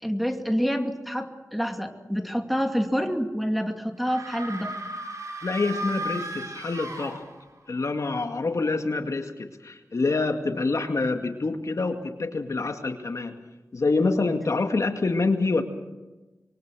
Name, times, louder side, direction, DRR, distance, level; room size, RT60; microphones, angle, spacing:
voice 1, 0.0-4.7, equal, ahead, 4 dB, 2.5 m, -27 dB
sound 1, 4.0-7.7, right 1 dB, 65° right, 6.4 m, -35 dB
voice 2, 5.4-7.2 7.7-13.4 13.7-15.6, left 3 dB, 60° left, 5 dB, 2.2 m, -26 dB
25.5 x 23.0 x 6.3 m, 1.1 s
wide cardioid pair, 65°, 6 cm